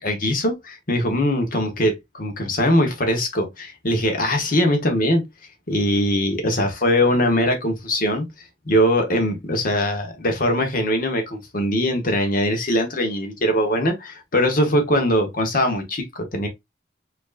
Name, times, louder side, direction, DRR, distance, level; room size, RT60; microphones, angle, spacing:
voice 1, 0.0-5.2 5.7-8.3 8.6-16.5, equal, 50° left, 1.2 m, -21 dB
4.4 x 2.7 x 2.5 m
head